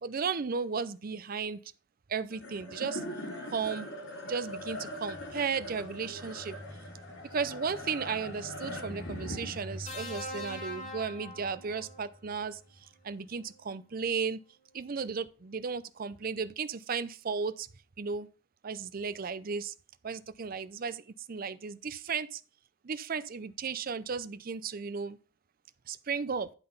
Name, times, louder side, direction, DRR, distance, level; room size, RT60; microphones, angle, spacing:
voice 1, 0.0-1.6 2.1-3.0 3.5-3.9 4.2-6.6 7.3-14.4 14.7-17.7 18.0-18.3 18.6-19.7 20.0-22.4 22.8-25.2 25.9-26.5, right 5 dB, 50° right, 0.5 m, -35 dB
sound 1, 2.3-12.8, left 1 dB, 85° left, 3.5 m, -42 dB
sound 2, 9.9-12.1 13.4-13.6, left 1 dB, 40° left, 2.7 m, -42 dB
10.5 x 3.9 x 5.4 m
head